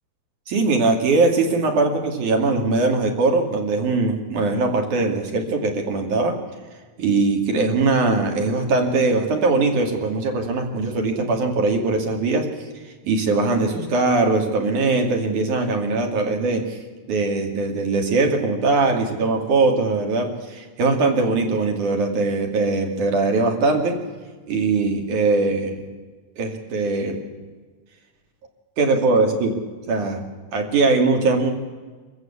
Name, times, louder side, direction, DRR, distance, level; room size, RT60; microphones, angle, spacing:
voice 1, 0.5-6.3 7.0-12.5 13.0-16.8 17.1-24.0 24.5-25.8 26.4-27.2 28.8-29.6 29.9-30.2 30.5-31.5, right 3 dB, 55° right, 3 dB, 3.4 m, -21 dB
25.5 x 14.5 x 8.4 m, 1.4 s
omnidirectional pair, 4.3 m